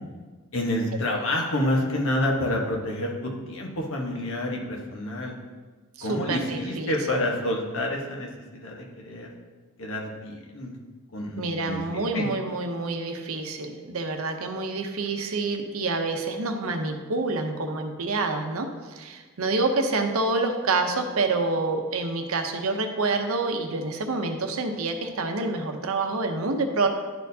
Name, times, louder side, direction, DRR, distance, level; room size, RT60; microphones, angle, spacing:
voice 1, 0.5-5.3 6.0-9.3 9.8-10.7 11.1-12.3, left 1 dB, 65° left, 0 dB, 1.2 m, -28 dB
voice 2, 6.0-6.9 11.4-26.9, right 3 dB, 75° right, 5 dB, 0.7 m, -27 dB
11.0 x 4.3 x 2.7 m, 1.4 s
head